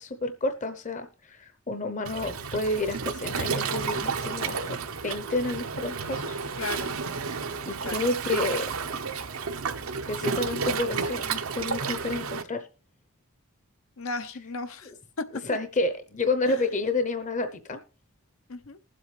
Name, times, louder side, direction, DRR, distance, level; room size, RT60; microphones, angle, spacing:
voice 1, 0.0-6.4 7.7-8.7 10.1-12.7 15.4-17.8, left 2 dB, 35° left, 0.8 m, -30 dB
Waves surf, 2.0-12.4, right 5 dB, 85° right, 0.9 m, -31 dB
voice 2, 6.6-7.0 7.8-8.0 14.0-14.9 15.2-15.3 16.5-16.6 18.5-18.8, left 3 dB, 80° left, 0.9 m, -35 dB
20.0 x 7.8 x 3.3 m
head